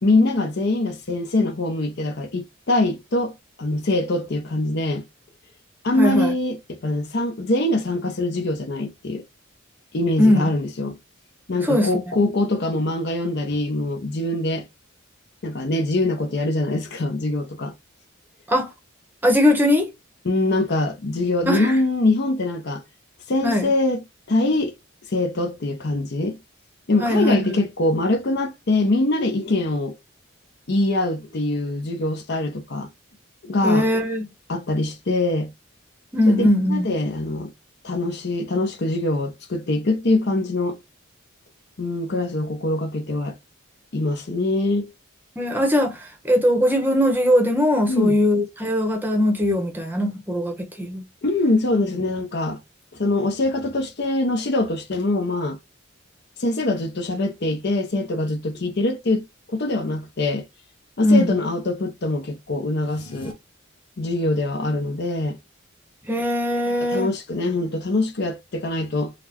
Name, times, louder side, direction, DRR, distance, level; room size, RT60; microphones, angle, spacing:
voice 1, 0.0-5.1 5.8-9.2 9.9-11.0 11.5-14.7 15.4-17.7 20.2-22.8 23.3-24.7 25.1-26.4 26.9-29.9 30.7-32.9 33.4-33.9 34.5-35.5 36.3-37.5 37.8-40.8 41.8-43.4 43.9-44.9 47.9-48.2 51.2-52.6 52.9-55.6 56.4-60.4 61.0-63.4 64.0-65.4 66.9-69.1, left 2 dB, 50° left, 0.6 m, -23 dB
voice 2, 6.0-6.3 10.2-10.5 11.7-11.9 18.5-18.7 19.2-19.9 21.5-21.8 23.4-23.6 27.0-27.5 33.6-34.2 36.1-36.9 45.4-51.0 61.0-61.4 66.1-67.1, left 1 dB, 10° right, 0.8 m, -20 dB
sound 1, 62.7-63.3, left 1 dB, 25° left, 0.9 m, -40 dB
4.0 x 2.1 x 2.8 m
head